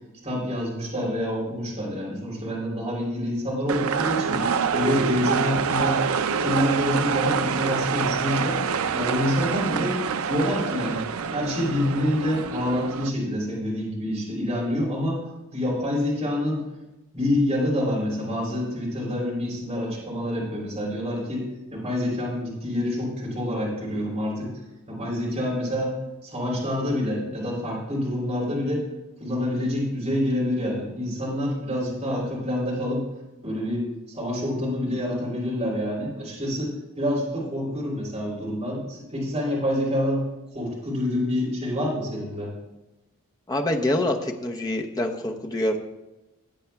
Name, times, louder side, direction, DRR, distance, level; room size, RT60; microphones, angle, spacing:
voice 1, 0.2-4.4 4.7-8.6 8.9-10.0 10.3-11.0 11.3-16.6 17.1-21.5 21.7-24.5 24.9-28.9 29.2-33.0 33.4-40.3 40.5-42.5, left 1 dB, 30° right, -6 dB, 3.4 m, -27 dB
sound 1, 3.7-13.1, right 6 dB, 70° right, 0.4 m, -26 dB
voice 2, 43.5-45.8, left 1 dB, 15° left, 2 dB, 0.7 m, -25 dB
18.0 x 7.9 x 2.3 m, 1.0 s
head